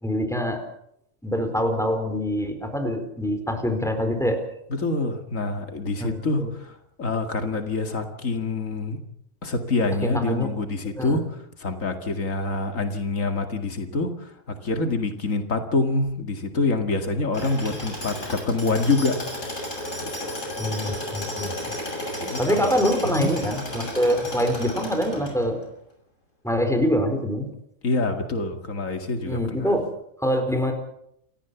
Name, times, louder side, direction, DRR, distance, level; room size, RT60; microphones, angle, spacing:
voice 1, 0.0-0.6 1.2-4.4 6.0-6.5 10.0-10.5 11.0-11.2 20.6-21.7 22.4-25.6 26.4-27.5 29.2-29.9 30.2-30.7, equal, ahead, 5 dB, 4.5 m, -25 dB
voice 2, 4.7-9.0 9.4-19.3 20.0-20.4 22.2-22.7 23.0-23.3 27.8-29.7, left 3 dB, 90° left, 6 dB, 2.5 m, -26 dB
Tools, 17.3-25.6, left 1 dB, 70° left, 8.0 m, -33 dB
29.0 x 14.0 x 7.1 m, 0.73 s
omnidirectional pair, 1.3 m